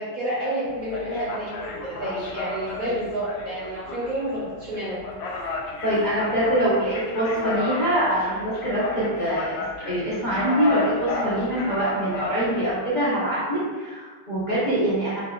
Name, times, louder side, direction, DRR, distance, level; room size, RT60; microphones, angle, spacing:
voice 1, 0.0-5.0, right 1 dB, 50° right, -8 dB, 1.1 m, -29 dB
sound 1, 0.6-12.7, left 2 dB, 70° left, 1.2 m, -33 dB
voice 2, 5.8-15.2, equal, 55° left, -11 dB, 0.5 m, -24 dB
5.3 x 2.4 x 2.5 m, 1.4 s
omnidirectional pair, 2.4 m